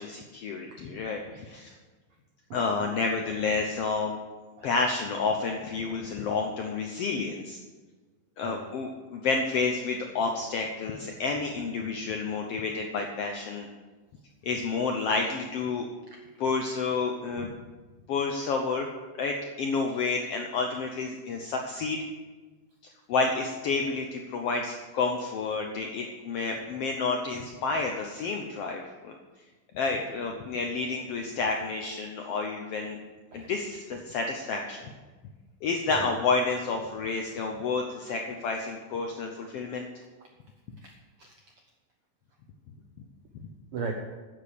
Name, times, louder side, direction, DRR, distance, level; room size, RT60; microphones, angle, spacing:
voice 1, 0.0-1.7 2.5-4.1 4.6-7.6 8.4-13.7 14.4-15.9 16.4-17.5 18.1-18.9 19.2-22.0 23.1-29.2 29.7-33.0 33.3-34.8 35.6-39.9 43.3-43.5, left 4 dB, 75° left, 3 dB, 1.4 m, -30 dB
voice 2, 2.5-2.9 4.6-4.7 8.4-8.6 16.1-16.2 33.3-33.5 35.9-36.1 40.8-41.3 43.7-43.9, right 5 dB, 75° right, 2 dB, 1.3 m, -38 dB
9.8 x 7.7 x 6.7 m, 1.3 s
omnidirectional pair, 3.7 m